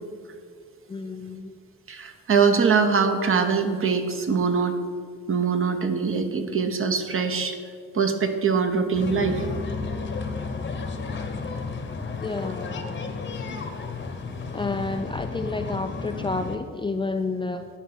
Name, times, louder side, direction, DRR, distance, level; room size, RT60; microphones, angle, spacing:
voice 1, 0.9-1.5 12.2-13.0 14.5-17.7, left 3 dB, 15° left, 6 dB, 0.4 m, -30 dB
voice 2, 1.9-4.7 5.3-7.6 7.9-9.5, right 5 dB, 45° right, 7 dB, 1.0 m, -23 dB
sound 1, 8.9-16.6, left 4 dB, 40° left, 1.0 m, -32 dB
10.0 x 5.1 x 5.9 m, 2.1 s
cardioid pair, 90°, 30 cm